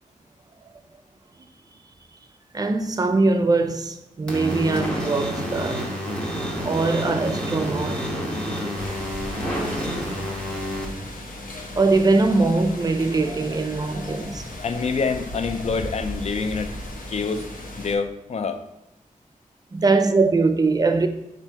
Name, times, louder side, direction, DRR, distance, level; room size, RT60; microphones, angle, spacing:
voice 1, 2.5-5.8 6.7-8.0 11.8-14.5 19.7-21.1, right 3 dB, 25° right, 0.3 m, -21 dB
sound 1, 4.3-10.8, equal, 10° left, 0.9 m, -28 dB
sound 2, 8.8-17.9, left 1 dB, 85° left, 0.7 m, -36 dB
voice 2, 14.6-16.8 17.1-17.5 17.8-18.6, left 5 dB, 50° left, 0.4 m, -26 dB
4.3 x 2.6 x 4.4 m
wide cardioid pair, 125°, 14 cm